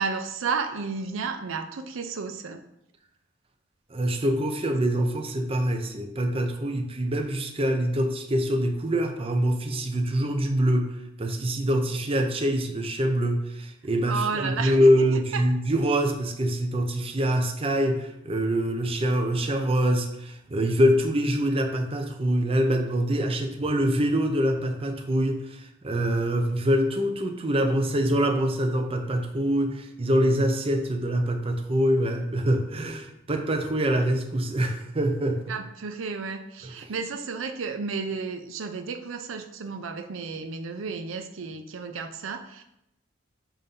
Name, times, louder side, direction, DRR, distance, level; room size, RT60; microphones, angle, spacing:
voice 1, 0.0-2.6 14.0-14.9 15.3-15.4 35.5-42.6, right 5 dB, 85° right, 7 dB, 0.5 m, -32 dB
voice 2, 3.9-10.9 11.2-35.5 36.6-36.7, equal, 30° right, 5 dB, 0.6 m, -25 dB
7.4 x 2.7 x 5.3 m, 0.82 s
head